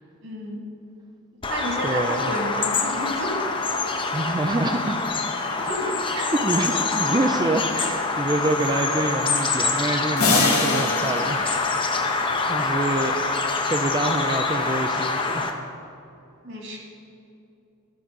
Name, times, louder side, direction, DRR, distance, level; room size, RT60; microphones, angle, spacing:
voice 1, 0.2-0.6 1.5-3.3 3.7-3.8 5.3-6.0 12.3-12.5 16.4-16.8, right 1 dB, 60° right, -1 dB, 2.5 m, -31 dB
Bird vocalization bird call bird song, 1.4-15.5, left 4 dB, 25° left, 0.7 m, -25 dB
voice 2, 1.8-2.2 4.1-5.0 5.6-11.5 11.8-12.1 12.5-13.2 13.6-15.5, right 2 dB, 20° right, 4 dB, 0.4 m, -26 dB
sound 1, 10.2-12.7, left 3 dB, 85° left, 2.2 m, -25 dB
12.5 x 6.4 x 5.3 m, 2.7 s
head